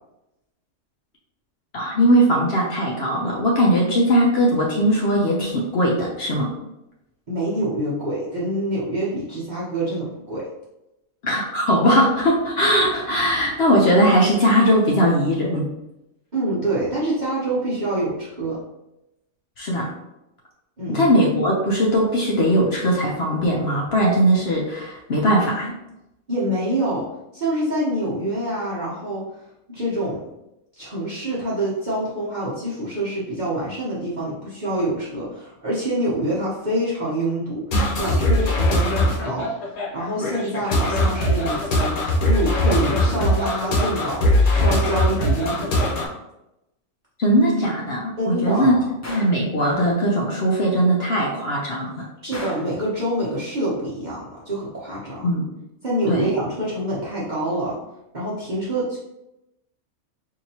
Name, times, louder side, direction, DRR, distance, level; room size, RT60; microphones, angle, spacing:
voice 1, 1.7-6.5 11.2-15.7 19.6-19.9 20.9-25.7 47.2-48.7 49.1-52.1 55.2-55.4 56.1-56.3, equal, 55° left, -3 dB, 0.8 m, -19 dB
voice 2, 7.3-10.5 16.3-18.6 20.8-21.1 26.3-27.1 27.3-29.3 29.7-30.2 30.7-37.6 38.0-44.2 44.5-46.1 48.2-48.8 52.2-55.3 55.8-57.8 58.1-59.0, right 1 dB, 40° right, -9 dB, 0.9 m, -26 dB
sound 1, 37.7-46.1, left 1 dB, 90° left, 1.4 m, -20 dB
Gunshot gunfire, 49.0-49.5 52.3-52.8, left 1 dB, 25° left, 0.3 m, -35 dB
4.5 x 2.8 x 2.7 m, 0.90 s
omnidirectional pair, 1.5 m